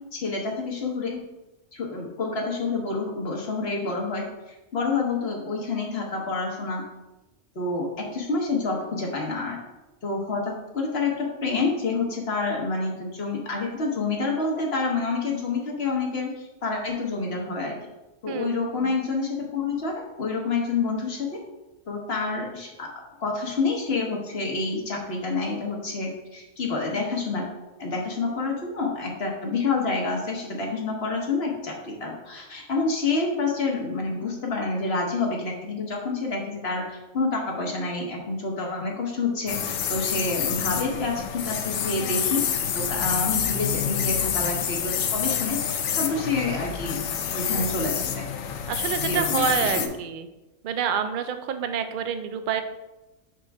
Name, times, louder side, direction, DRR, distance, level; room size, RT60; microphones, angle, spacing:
voice 1, 0.1-1.2 1.7-4.2 4.7-6.8 7.5-9.6 10.0-17.8 18.2-21.3 21.9-22.9 23.2-27.4 27.8-42.4 42.7-47.0 47.3-48.3 49.0-49.9, left 3 dB, 50° left, 0 dB, 1.3 m, -28 dB
voice 2, 18.3-18.9 47.6-47.7 48.7-50.3 50.6-52.6, right 7 dB, 60° right, 9 dB, 0.5 m, -28 dB
sound 1, 39.5-49.9, left 8 dB, 85° left, 1.0 m, -27 dB
6.5 x 4.9 x 3.4 m, 1.0 s
omnidirectional pair, 1.3 m